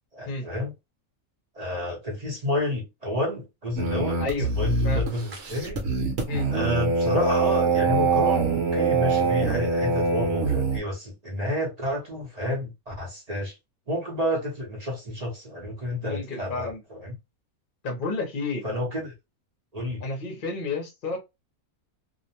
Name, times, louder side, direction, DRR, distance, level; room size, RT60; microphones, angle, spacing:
voice 1, 0.1-0.7 1.6-4.2 4.5-5.8 6.5-13.6 13.9-17.2 18.6-19.1 19.7-20.0, left 1 dB, 35° right, 0.6 m, -30 dB
sound 1, 3.8-10.8, right 4 dB, 60° right, 1.0 m, -24 dB
voice 2, 4.2-4.5 4.8-5.0 6.3-6.5 16.0-16.8 17.8-18.6 20.0-21.2, left 3 dB, 45° left, 0.7 m, -31 dB
2.5 x 2.1 x 2.7 m
omnidirectional pair, 1.5 m